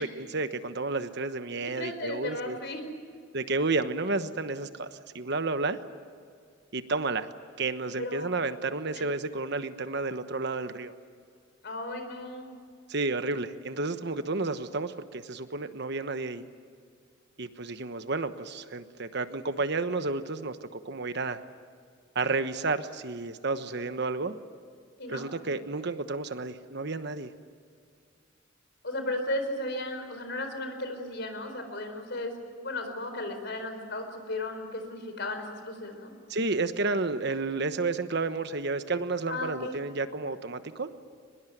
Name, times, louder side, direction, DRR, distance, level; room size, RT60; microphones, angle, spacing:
voice 1, 0.0-2.6 3.3-5.8 6.7-7.3 7.6-10.9 12.9-16.5 17.4-21.4 22.1-24.3 25.1-27.3 36.3-40.9, right 3 dB, 60° right, 10 dB, 1.2 m, -31 dB
voice 2, 1.7-2.8 8.0-8.3 8.9-9.0 11.6-12.5 25.0-25.3 28.8-32.3 32.6-36.1 39.3-39.7, left 2 dB, 60° left, 6 dB, 4.5 m, -35 dB
23.5 x 21.0 x 9.3 m, 2.1 s
head